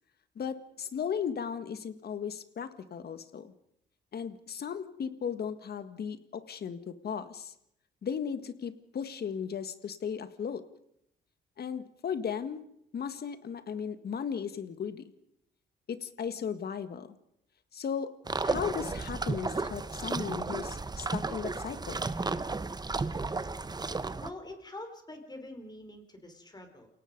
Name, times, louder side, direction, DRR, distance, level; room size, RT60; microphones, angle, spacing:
voice 1, 0.3-3.5 4.1-7.5 8.0-10.6 11.6-12.6 12.9-15.0 15.9-17.1 17.7-18.1 18.4-22.0, left 7 dB, 55° left, 11 dB, 1.7 m, -36 dB
sound 1, 18.3-24.3, right 3 dB, 20° right, 1.0 m, -33 dB
voice 2, 24.2-26.9, left 1 dB, 20° left, 5 dB, 4.6 m, -45 dB
28.5 x 18.0 x 5.3 m, 0.77 s
cardioid pair, 90°, 20 cm